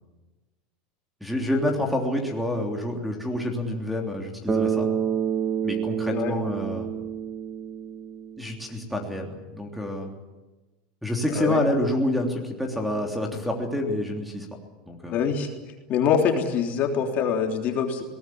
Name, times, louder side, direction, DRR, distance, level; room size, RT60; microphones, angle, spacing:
voice 1, 1.2-4.9 5.6-6.9 8.4-10.1 11.0-14.5 14.9-15.2, left 1 dB, ahead, 3 dB, 3.3 m, -28 dB
Bass guitar, 4.5-8.7, right 8 dB, 20° right, 2.7 m, -28 dB
voice 2, 15.1-15.5 15.9-18.0, left 7 dB, 40° left, 3 dB, 3.3 m, -24 dB
21.5 x 19.0 x 9.5 m, 1.1 s
supercardioid pair, 150°, 4 cm